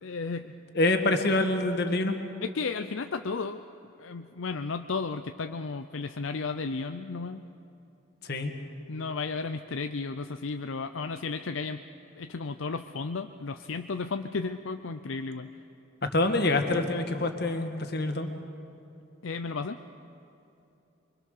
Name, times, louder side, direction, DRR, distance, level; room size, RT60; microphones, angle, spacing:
voice 1, 0.0-0.5 2.4-3.6 4.0-7.4 8.9-11.8 12.2-15.5 19.2-19.8, left 4 dB, 75° left, 8 dB, 0.6 m, -33 dB
voice 2, 0.7-2.2 8.2-8.5 16.1-18.3, left 2 dB, 50° left, 6 dB, 1.7 m, -26 dB
25.0 x 24.0 x 6.7 m, 2.9 s
head